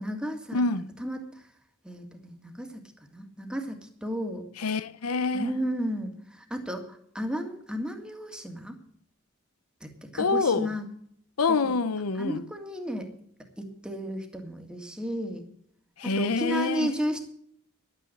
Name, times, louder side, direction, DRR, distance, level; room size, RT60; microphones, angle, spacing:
voice 1, 0.0-1.4 1.8-2.8 3.1-4.5 5.3-8.7 9.8-10.9 11.5-11.7 12.2-13.1 13.6-15.4 16.0-17.2, equal, 5° right, 1.9 m, -33 dB
voice 2, 0.5-0.8 4.6-5.5 10.2-10.7 11.4-12.4 16.0-16.9, left 4 dB, 90° left, 0.7 m, -26 dB
11.5 x 9.1 x 7.9 m
head